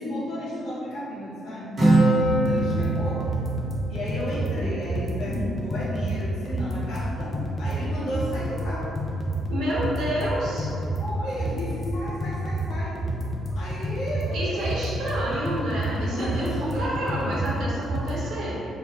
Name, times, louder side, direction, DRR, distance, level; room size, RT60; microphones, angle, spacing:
voice 1, 0.0-3.3 3.9-8.9 11.0-13.0 13.5-14.7 15.9-17.5, equal, 90° left, -10 dB, 1.2 m, -33 dB
Acoustic guitar, 1.8-5.4, right 2 dB, 35° right, 1.1 m, -24 dB
sound 1, 2.2-18.2, right 1 dB, 15° left, 0.6 m, -29 dB
voice 2, 9.5-10.7 14.3-18.7, right 1 dB, 70° right, -6 dB, 1.3 m, -29 dB
7.2 x 2.7 x 2.4 m, 2.6 s
cardioid pair, 170°, 0 cm